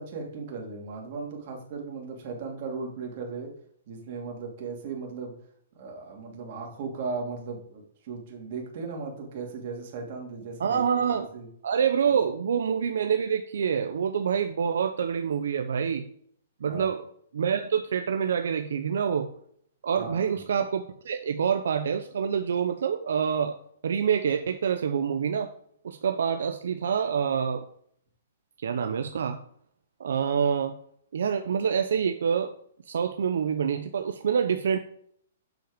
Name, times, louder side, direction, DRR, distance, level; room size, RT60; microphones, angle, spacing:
voice 1, 0.0-3.5 3.9-5.3 5.7-11.0 11.3-11.5 16.7-16.9 19.9-20.4, right 4 dB, 40° right, 1 dB, 2.7 m, -37 dB
voice 2, 10.6-11.3 11.6-16.0 16.6-17.0 17.3-19.3 19.8-23.6 23.8-25.5 25.8-27.6 28.6-29.4 30.0-30.7 31.1-32.5 32.9-34.8, right 7 dB, 75° right, 7 dB, 0.7 m, -26 dB
7.7 x 6.0 x 5.1 m, 0.64 s
hypercardioid pair, 160°, 0 cm